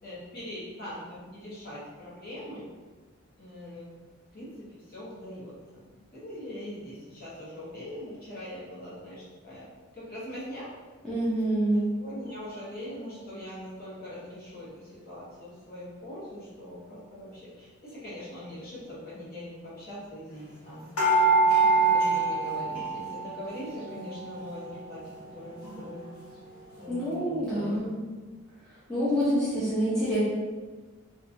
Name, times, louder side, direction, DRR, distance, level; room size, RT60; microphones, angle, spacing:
voice 1, 0.0-2.7 3.4-4.1 4.3-5.9 6.1-9.7 9.9-10.7 11.9-20.9 21.2-21.3 21.7-25.0 25.3-26.0 26.8-27.8, left 1 dB, 45° left, -9 dB, 1.1 m, -42 dB
voice 2, 11.0-11.8 26.9-28.0 28.9-30.2, equal, 5° left, -11 dB, 0.6 m, -27 dB
sound 1, 21.0-23.5 23.8-24.8 25.3-25.4 25.6-25.8, right 3 dB, 90° left, 1.3 m, -24 dB
2.8 x 2.7 x 2.5 m, 1.3 s
head